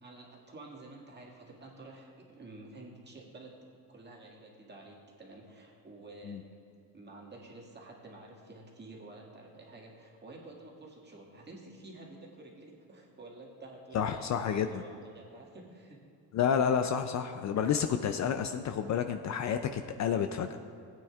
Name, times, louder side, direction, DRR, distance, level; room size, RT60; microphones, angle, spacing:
voice 1, 0.0-6.6 6.9-16.0, right 2 dB, 25° right, -2 dB, 1.9 m, -50 dB
voice 2, 13.9-14.8 16.3-20.6, left 7 dB, 45° left, 8 dB, 0.4 m, -30 dB
15.5 x 9.0 x 2.4 m, 2.6 s
cardioid pair, 125°, 39 cm